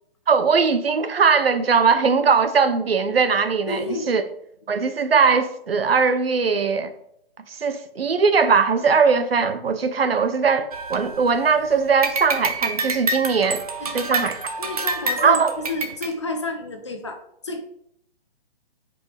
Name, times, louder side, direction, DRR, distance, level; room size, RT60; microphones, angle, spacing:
voice 1, 0.3-4.2 4.7-6.9 7.5-13.6 13.9-14.3 15.2-15.5, right 5 dB, 70° right, 0.9 m, -20 dB
voice 2, 3.7-4.2 13.8-14.3 14.6-17.6, left 2 dB, 30° left, 0.7 m, -31 dB
sound 1, 10.7-11.6 12.0-16.1, right 3 dB, 35° right, 0.8 m, -27 dB
8.8 x 5.1 x 3.5 m
hypercardioid pair, 170°, 31 cm